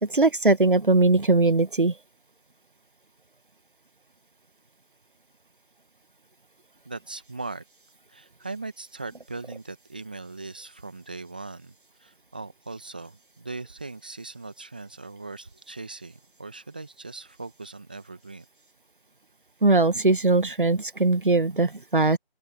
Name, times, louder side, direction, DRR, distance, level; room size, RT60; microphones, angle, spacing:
voice 1, 0.0-1.9 19.6-22.2, right 3 dB, 55° right, 1.5 m, -20 dB
voice 2, 6.8-7.6 8.1-11.7 12.0-18.4, right 3 dB, 10° right, 1.6 m, -39 dB
open air
figure-of-eight pair, 170°, 31 cm